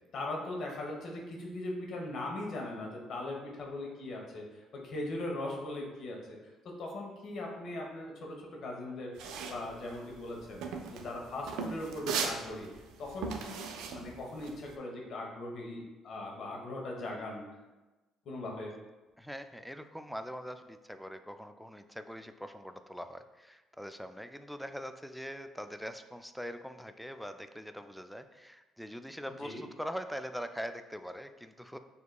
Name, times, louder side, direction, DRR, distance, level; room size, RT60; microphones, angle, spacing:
voice 1, 0.1-10.6 10.9-12.7 13.0-17.4 18.2-18.7 29.4-29.6, left 2 dB, 60° left, -1 dB, 1.1 m, -40 dB
sound 1, 9.2-14.7, right 5 dB, 80° right, 0.4 m, -38 dB
voice 2, 19.2-31.8, equal, ahead, 8 dB, 0.3 m, -42 dB
6.7 x 2.9 x 2.3 m, 1.1 s
supercardioid pair, 75°, 0 cm